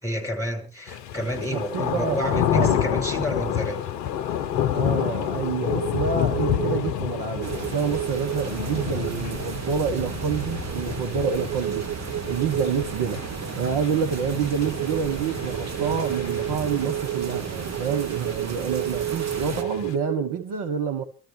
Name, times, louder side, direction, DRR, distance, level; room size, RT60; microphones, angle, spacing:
voice 1, 0.0-3.8, equal, 5° right, 4.9 m, -29 dB
sound 1, 0.9-20.0, left 10 dB, 80° left, 0.7 m, -30 dB
voice 2, 1.3-3.0 4.7-13.2 13.6-21.0, right 6 dB, 55° right, 1.1 m, -28 dB
sound 2, 5.7-14.0 14.6-20.4, right 12 dB, 80° right, 0.7 m, -33 dB
sound 3, 7.4-19.6, right 8 dB, 35° right, 1.0 m, -35 dB
25.0 x 13.0 x 3.3 m
figure-of-eight pair, 50°, 49 cm